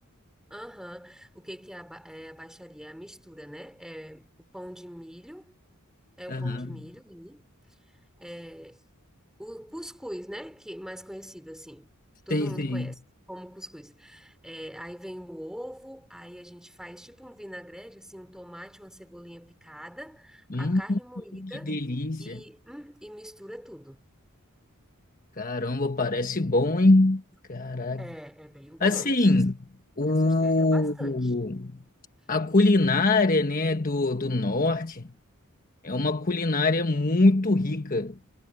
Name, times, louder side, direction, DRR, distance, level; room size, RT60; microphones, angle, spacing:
voice 1, 0.5-5.5 6.2-7.5 8.2-8.8 9.4-11.9 12.3-13.0 13.3-21.8 22.2-24.0 28.0-29.5 30.2-31.3, equal, 5° right, 5.0 m, -43 dB
voice 2, 6.3-6.7 12.3-12.9 20.5-21.0 21.4-22.4 25.4-27.2 27.5-28.1 28.8-29.6 30.0-31.8 32.3-35.1 35.8-38.2, left 2 dB, 40° left, 1.3 m, -24 dB
head